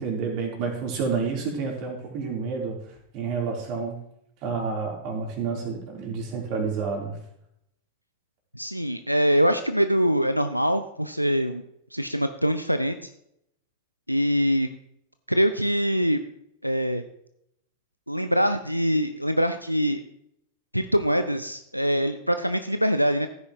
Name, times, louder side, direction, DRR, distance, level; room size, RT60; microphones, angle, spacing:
voice 1, 0.0-4.0 4.4-7.2, right 5 dB, 45° right, 0 dB, 3.6 m, -29 dB
voice 2, 8.5-11.6 11.9-13.1 14.1-14.7 15.3-16.2 16.6-17.0 18.1-20.0 20.7-23.3, equal, 90° right, 9 dB, 0.5 m, -23 dB
15.5 x 9.6 x 3.0 m, 0.75 s
figure-of-eight pair, 90°, 0 cm